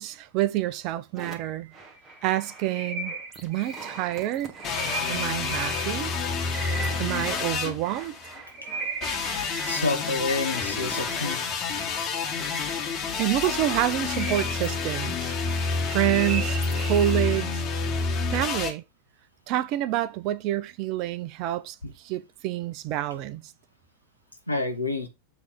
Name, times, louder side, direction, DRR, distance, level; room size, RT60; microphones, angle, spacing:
voice 1, 0.0-1.7 2.2-3.1 3.4-4.5 5.1-6.1 7.0-8.1 13.2-15.3 15.9-17.6 18.3-18.8 19.5-23.5, right 14 dB, 40° right, 0.6 m, -28 dB
sound 1, 1.2-17.8, right 3 dB, 20° right, 1.5 m, -38 dB
sound 2, 4.6-8.4 9.0-18.7, left 4 dB, 35° left, 1.7 m, -29 dB
voice 2, 9.7-11.4 24.5-25.1, left 2 dB, 85° left, 1.2 m, -28 dB
7.9 x 3.4 x 5.2 m
figure-of-eight pair, 90°, 0 cm